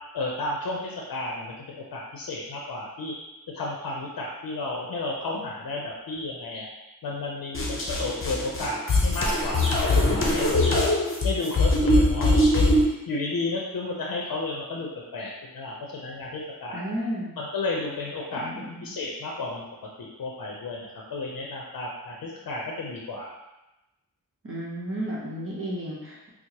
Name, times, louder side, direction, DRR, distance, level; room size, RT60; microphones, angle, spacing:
voice 1, 0.1-3.1 3.5-6.7 7.0-10.9 11.2-12.8 13.1-16.8 17.4-19.6 20.0-23.3, left 2 dB, 80° left, -2 dB, 0.6 m, -32 dB
sound 1, 7.5-12.9, left 1 dB, 35° left, 0.7 m, -22 dB
voice 2, 16.7-17.4 18.3-18.9 24.4-26.3, equal, 40° right, -5 dB, 0.8 m, -33 dB
4.4 x 2.0 x 2.8 m, 0.97 s
wide cardioid pair, 80°, 35 cm